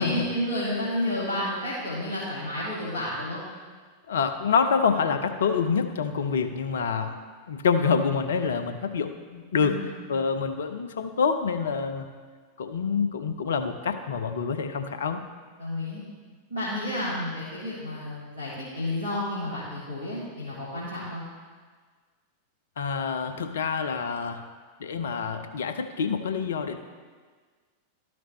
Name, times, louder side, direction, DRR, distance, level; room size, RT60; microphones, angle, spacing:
voice 1, 0.0-3.4 9.6-9.9 15.6-16.0 16.5-21.2, left 1 dB, 85° right, -10 dB, 2.3 m, -31 dB
voice 2, 4.1-7.2 7.5-12.1 12.6-15.2 22.8-24.4 24.8-26.8, left 5 dB, 65° left, 8 dB, 0.6 m, -27 dB
12.5 x 6.0 x 3.1 m, 1.5 s
figure-of-eight pair, 90°, 0 cm